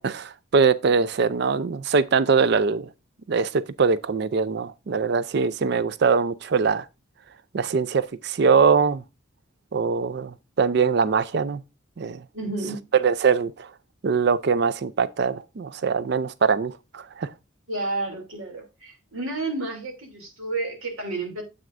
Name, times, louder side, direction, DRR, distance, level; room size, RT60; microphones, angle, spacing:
voice 1, 0.0-2.9 3.3-6.9 7.5-9.0 9.7-11.6 12.0-12.2 12.9-13.7 14.0-17.3, right 5 dB, 55° right, 0.4 m, -22 dB
voice 2, 12.3-12.8 17.7-21.4, right 2 dB, 90° right, 2.8 m, -31 dB
9.2 x 7.8 x 2.5 m
head